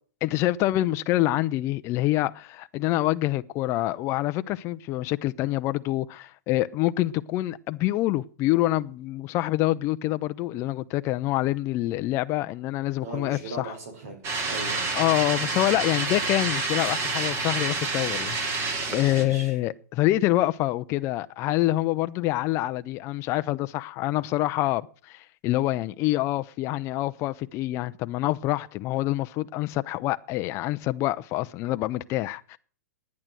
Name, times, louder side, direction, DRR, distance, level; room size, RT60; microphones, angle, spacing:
voice 1, 0.2-13.7 14.9-18.4 18.9-32.6, left 16 dB, 30° left, 0.5 m, -26 dB
voice 2, 13.0-14.2 14.5-14.9 19.1-19.5, right 3 dB, 65° right, 5.5 m, -38 dB
sound 1, 14.2-19.2, right 3 dB, 30° right, 2.7 m, -28 dB
11.0 x 9.6 x 7.6 m
hypercardioid pair, 135°, 9 cm